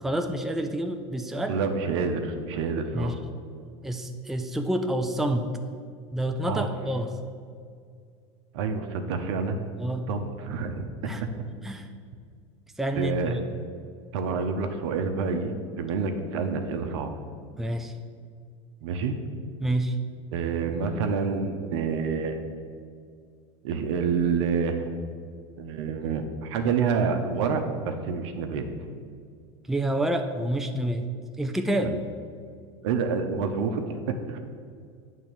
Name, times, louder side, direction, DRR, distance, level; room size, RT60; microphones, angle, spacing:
voice 1, 0.0-1.6 2.9-3.2 3.8-5.5 6.1-7.1 9.8-10.1 11.1-11.2 11.6-11.9 12.8-13.4 17.5-17.9 19.6-20.0 29.7-31.1 31.4-32.0, right 1 dB, ahead, 6 dB, 0.5 m, -28 dB
voice 2, 1.5-3.1 6.5-6.7 8.5-9.6 10.1-11.3 12.9-13.3 14.1-17.2 18.8-19.2 20.3-22.4 23.6-24.9 25.6-28.6 31.8-32.0 32.8-34.4, right 5 dB, 70° right, 6 dB, 0.9 m, -28 dB
8.7 x 3.7 x 6.8 m, 2.2 s
hypercardioid pair, 95°, 15 cm